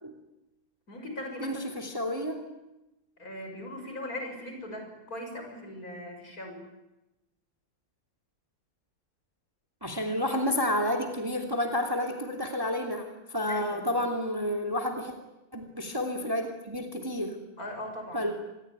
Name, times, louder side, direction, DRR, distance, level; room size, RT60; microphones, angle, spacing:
voice 1, 0.9-1.8 3.2-6.6 13.5-13.9 17.6-18.3, left 1 dB, 45° left, 4 dB, 6.6 m, -39 dB
voice 2, 1.4-2.4 9.8-13.0 13.3-15.1 15.5-17.4 18.1-18.3, left 1 dB, 10° right, 3 dB, 2.9 m, -30 dB
27.0 x 21.5 x 9.7 m, 0.97 s
omnidirectional pair, 2.1 m